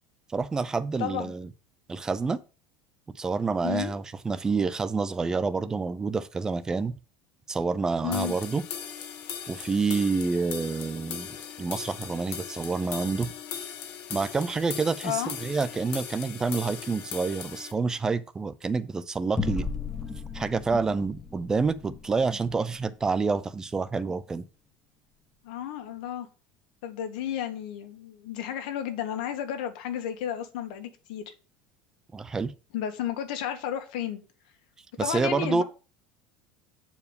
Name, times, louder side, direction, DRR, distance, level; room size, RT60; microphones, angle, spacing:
voice 1, 0.3-1.5 1.9-2.4 3.2-6.9 7.5-8.6 9.5-13.3 14.1-19.7 20.3-24.4 32.1-32.5 35.0-35.6, right 4 dB, 15° right, 0.6 m, -28 dB
voice 2, 1.0-1.3 3.6-3.9 8.0-8.4 15.0-15.3 25.4-26.3 26.8-31.3 32.7-34.2 35.0-35.6, left 10 dB, 85° left, 1.6 m, -32 dB
sound 1, 8.1-17.7, left 8 dB, 55° left, 1.8 m, -39 dB
sound 2, 19.4-24.2, left 4 dB, 5° left, 1.1 m, -36 dB
8.2 x 4.8 x 5.2 m
cardioid pair, 150°, 4 cm